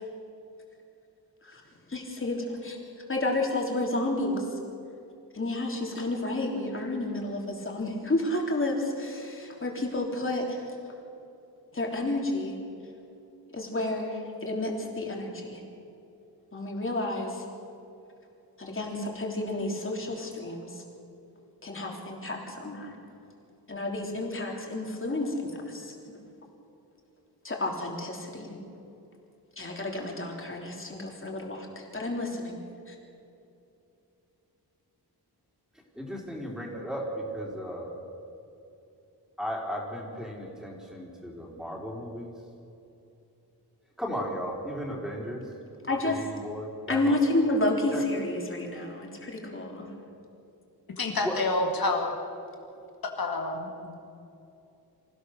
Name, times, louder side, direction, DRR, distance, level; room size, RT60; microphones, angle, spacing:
voice 1, 1.9-2.8 3.1-4.5 5.3-10.6 11.7-12.5 13.5-15.6 16.5-17.4 18.6-20.8 21.6-22.9 23.7-25.9 27.4-28.6 29.6-32.6 32.9-33.0 45.8-46.2 46.9-49.9, left 2 dB, 30° left, 0 dB, 3.4 m, -30 dB
voice 2, 36.0-37.9 39.4-42.3 44.0-45.4 46.0-47.2 47.9-48.0 51.2-51.3, equal, ahead, -3 dB, 4.0 m, -35 dB
voice 3, 51.0-52.2 53.2-54.0, left 2 dB, 65° left, 2 dB, 2.2 m, -28 dB
26.5 x 15.5 x 6.6 m, 2.7 s
wide cardioid pair, 150°, 39 cm